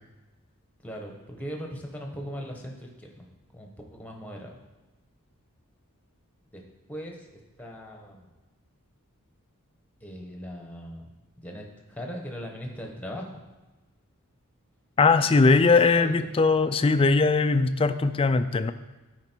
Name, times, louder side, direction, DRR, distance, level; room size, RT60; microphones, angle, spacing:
voice 1, 0.8-3.3 3.5-4.6 6.5-6.6 6.9-8.3 10.0-13.3 15.5-16.3, equal, 5° left, 1 dB, 1.1 m, -39 dB
voice 2, 15.0-18.7, left 4 dB, 25° left, 10 dB, 0.3 m, -20 dB
11.5 x 5.0 x 4.5 m, 1.1 s
head